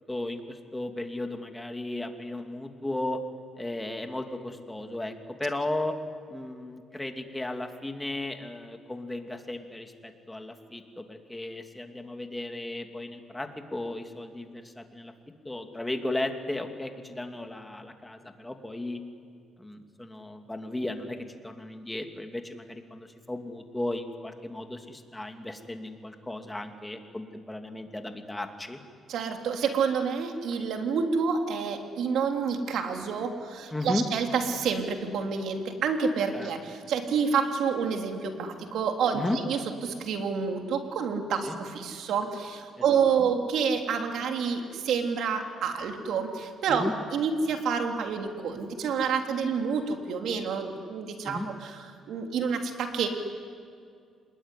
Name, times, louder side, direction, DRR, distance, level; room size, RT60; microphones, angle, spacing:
voice 1, 0.1-3.2 3.6-5.1 5.4-6.0 6.3-15.1 15.4-19.0 19.6-21.2 21.4-28.8 33.7-34.0 36.3-36.5 39.1-39.4 41.4-41.6 43.2-43.3 46.7-46.9 51.2-51.5, left 2 dB, 10° left, 5 dB, 2.6 m, -35 dB
voice 2, 29.1-53.1, right 6 dB, 75° right, 4 dB, 3.2 m, -28 dB
26.5 x 21.0 x 10.0 m, 2.2 s
cardioid pair, 105°, 0 cm